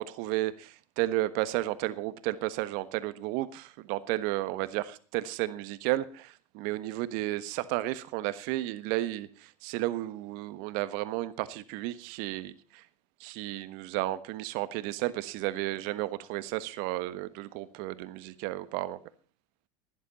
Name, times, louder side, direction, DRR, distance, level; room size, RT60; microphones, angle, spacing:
voice 1, 0.0-12.8 13.2-19.0, right 16 dB, 60° right, 1.3 m, -33 dB
16.5 x 11.0 x 4.2 m
hypercardioid pair, 85°, 17 cm